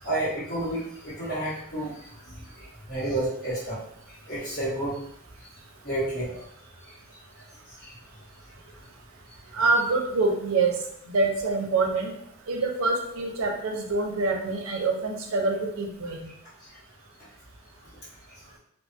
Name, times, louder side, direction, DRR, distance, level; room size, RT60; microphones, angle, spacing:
voice 1, 0.0-1.9 2.3-2.4 2.9-3.8 4.3-5.0 5.8-6.3 7.8-7.9, right 1 dB, 45° left, -16 dB, 1.3 m, -30 dB
voice 2, 9.5-10.7 11.1-12.1 12.5-16.2, right 3 dB, 85° right, 2 dB, 0.5 m, -25 dB
2.5 x 2.3 x 2.6 m, 0.71 s
head